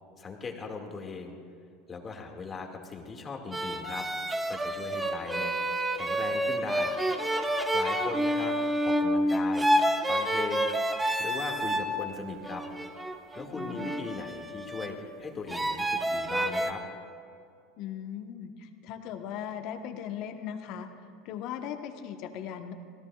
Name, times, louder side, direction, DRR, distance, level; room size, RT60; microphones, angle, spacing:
voice 1, 0.2-1.4 1.9-4.1 4.5-6.9 7.7-8.6 8.8-9.7 10.0-12.6 13.3-16.8, left 4 dB, 30° left, 2 dB, 2.1 m, -39 dB
sound 1, 3.5-11.9 12.5-15.0 15.5-16.7, right 1 dB, 15° right, 1.2 m, -29 dB
voice 2, 13.5-14.0 17.8-20.9 21.2-22.7, left 9 dB, 60° left, 6 dB, 1.2 m, -38 dB
25.0 x 17.5 x 2.4 m, 2.3 s
hypercardioid pair, 85°, 0 cm